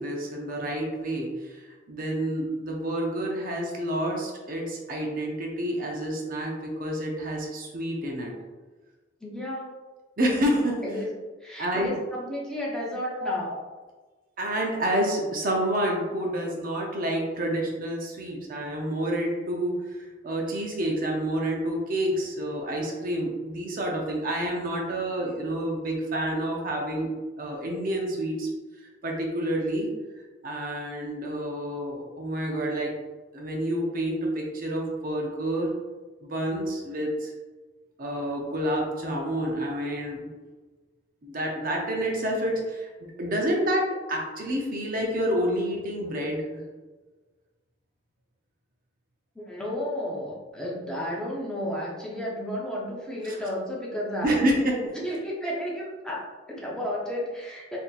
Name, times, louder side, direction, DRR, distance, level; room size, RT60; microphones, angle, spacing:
voice 1, 0.0-1.6 1.9-8.3 10.2-10.8 11.6-12.0 13.2-13.3 14.4-20.0 20.2-27.1 27.4-28.5 28.8-29.9 30.4-32.9 33.3-35.7 36.2-37.3 38.0-40.3 41.2-46.6 53.2-53.4 54.2-54.7, right 1 dB, 50° right, -1 dB, 0.6 m, -28 dB
voice 2, 9.2-9.8 10.8-11.1 11.4-13.5 49.4-54.5 55.0-57.8, equal, 5° left, -5 dB, 0.7 m, -32 dB
4.2 x 2.7 x 2.4 m, 1.3 s
head